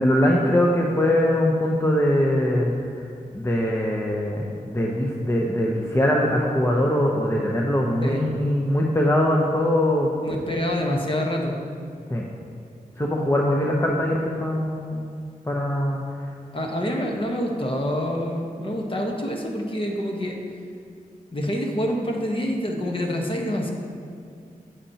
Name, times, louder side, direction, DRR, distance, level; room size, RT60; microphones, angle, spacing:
voice 1, 0.0-2.7 3.3-10.1 12.1-12.2 13.0-15.1 15.5-16.0, left 1 dB, 15° left, -2 dB, 0.8 m, -22 dB
voice 2, 10.2-11.6 16.5-20.4 21.3-23.7, equal, 35° left, 1 dB, 1.2 m, -26 dB
8.5 x 8.4 x 2.9 m, 2.3 s
cardioid pair, 60°, 15 cm